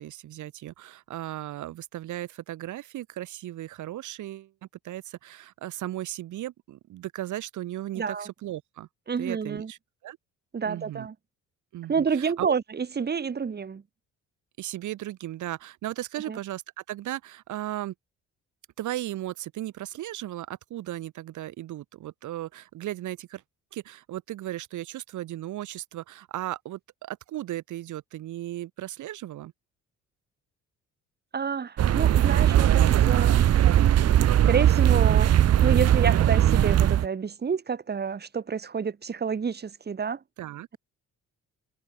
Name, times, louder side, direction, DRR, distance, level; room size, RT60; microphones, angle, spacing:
voice 1, 0.0-4.5 4.8-8.9 9.2-10.2 10.6-11.1 11.7-12.5 14.6-17.9 18.8-23.4 23.7-29.5 40.4-40.7, right 14 dB, 75° right, 1.4 m, -36 dB
voice 2, 8.0-8.3 9.1-9.7 10.5-11.1 11.9-13.8 16.3-16.4 31.3-33.6 34.4-40.2, right 6 dB, 35° right, 1.7 m, -29 dB
sound 1, 31.8-37.1, right 11 dB, 55° right, 0.9 m, -19 dB
cardioid pair, 90°, 30 cm